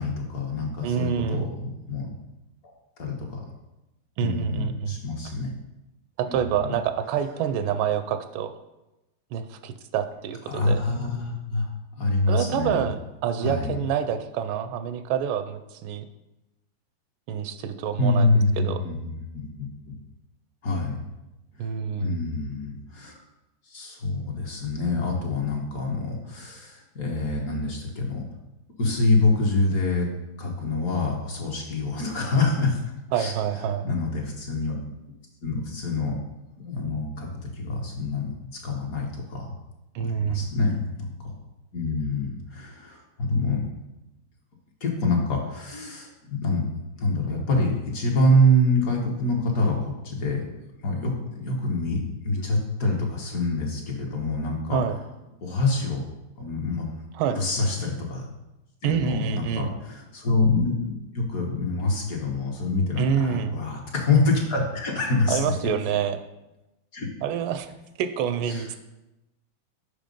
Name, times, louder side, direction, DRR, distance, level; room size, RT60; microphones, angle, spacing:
voice 1, 0.0-2.1 3.0-3.4 4.2-5.5 6.3-6.8 10.5-11.7 12.0-12.8 13.4-13.7 18.0-19.9 20.6-21.0 21.6-23.2 23.7-28.2 28.8-30.1 30.4-32.8 33.1-33.3 33.8-34.8 35.4-36.1 36.6-37.3 37.5-39.5 40.0-41.3 41.7-43.6 44.8-46.6 47.0-49.8 50.0-50.5 50.8-54.8 55.4-56.0 56.4-57.0 57.3-58.3 58.8-65.5 66.9-67.1 68.5-68.7, left 2 dB, 55° left, 0 dB, 1.2 m, -26 dB
voice 2, 0.8-1.4 4.2-5.0 6.2-8.5 9.3-10.8 12.3-16.1 17.3-18.3 18.6-18.8 21.6-22.2 33.1-33.9 39.9-40.5 54.7-55.0 57.1-57.4 58.8-59.7 63.0-63.5 65.3-66.2 67.2-67.7 68.0-68.8, right 8 dB, 85° right, 10 dB, 1.4 m, -27 dB
5.6 x 5.0 x 5.2 m, 0.97 s
omnidirectional pair, 2.2 m